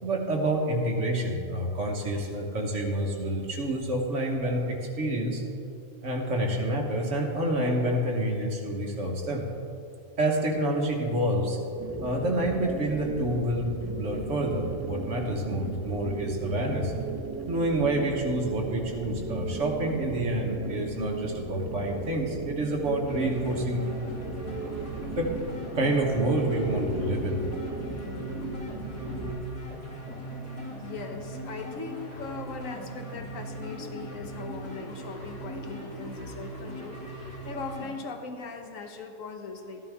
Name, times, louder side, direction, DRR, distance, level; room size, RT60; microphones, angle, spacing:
voice 1, 0.0-5.4 6.0-9.4 10.2-11.6 12.0-16.9 17.5-23.8 25.2-25.3 25.7-27.5, right 1 dB, 60° right, 1 dB, 1.5 m, -28 dB
sound 1, 11.8-29.3, right 2 dB, 15° right, 0.8 m, -37 dB
sound 2, 23.1-37.9, right 1 dB, 10° left, 2.2 m, -39 dB
voice 2, 30.8-39.8, left 4 dB, 70° left, 5 dB, 1.3 m, -40 dB
14.0 x 11.0 x 3.5 m, 2.7 s
omnidirectional pair, 1.5 m